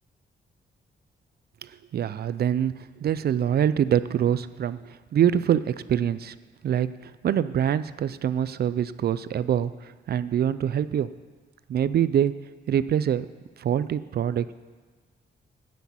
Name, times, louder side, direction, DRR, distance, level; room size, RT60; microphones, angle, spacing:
voice 1, 1.6-6.4 6.6-11.1 11.7-12.3 12.7-13.3 13.6-14.5, right 9 dB, 55° right, 15 dB, 0.4 m, -25 dB
8.3 x 8.1 x 8.4 m, 1.4 s
wide cardioid pair, 140°, 19 cm